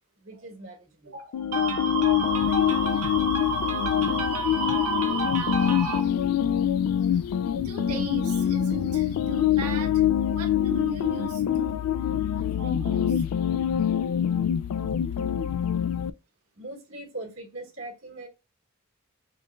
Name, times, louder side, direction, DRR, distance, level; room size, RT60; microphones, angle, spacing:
voice 1, 0.2-1.2 16.6-18.3, right 2 dB, 60° right, 1.8 m, -41 dB
voice 2, 1.0-6.2 7.6-11.8 12.3-13.3, right 2 dB, 85° right, 1.4 m, -32 dB
sound 1, 1.3-16.1, left 9 dB, 85° left, 0.3 m, -25 dB
4.4 x 3.0 x 2.3 m
head